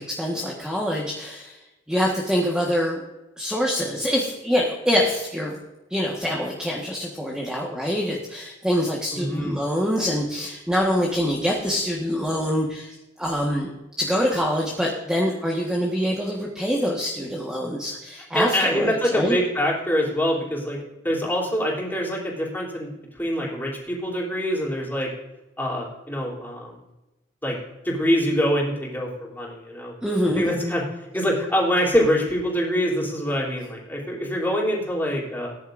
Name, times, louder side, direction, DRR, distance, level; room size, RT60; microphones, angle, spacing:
voice 1, 0.0-1.6 1.9-3.0 3.4-5.6 5.9-13.7 14.0-19.4 30.0-30.5, equal, 5° right, -2 dB, 1.4 m, -25 dB
voice 2, 9.1-9.6 18.3-20.8 21.0-25.1 25.6-26.8 27.4-27.6 27.8-29.9 30.4-30.8 31.1-35.5, equal, 10° left, -3 dB, 3.4 m, -24 dB
18.5 x 10.5 x 2.6 m, 1.0 s
head